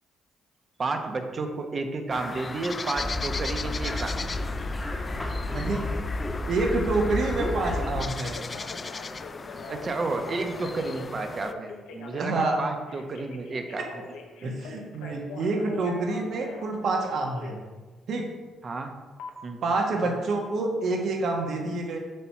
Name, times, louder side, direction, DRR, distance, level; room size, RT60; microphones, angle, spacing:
voice 1, 0.8-4.3 9.7-13.8 18.6-18.9 19.4-19.6, right 3 dB, 40° right, 5 dB, 0.9 m, -31 dB
sound 1, 2.1-11.5, left 4 dB, 30° left, 0.3 m, -37 dB
sound 2, 3.0-8.0, left 2 dB, 10° left, 1.2 m, -31 dB
voice 2, 5.5-5.8 6.5-8.4 12.2-12.6 13.8-13.9 14.4-17.6 18.1-18.3 19.6-22.0, right 3 dB, 60° right, 2 dB, 1.3 m, -27 dB
Telephone, 8.0-17.6 19.2-19.3, left 4 dB, 85° left, 0.9 m, -43 dB
8.1 x 2.9 x 5.8 m, 1.3 s
cardioid pair, 75°, 0 cm